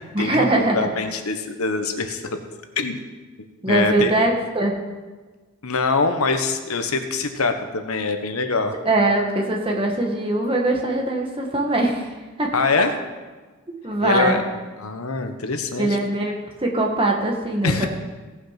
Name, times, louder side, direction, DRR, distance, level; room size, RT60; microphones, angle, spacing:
voice 1, 0.1-0.9 3.6-4.7 8.8-12.1 12.4-12.5 13.8-14.4 15.8-17.9, right 2 dB, 25° right, 0 dB, 1.6 m, -21 dB
voice 2, 0.7-2.4 2.8-3.0 3.7-4.1 5.6-8.7 12.5-12.9 14.0-14.4 14.8-15.9 17.6-17.9, left 4 dB, 80° left, 7 dB, 1.1 m, -23 dB
17.0 x 6.2 x 5.8 m, 1.3 s
head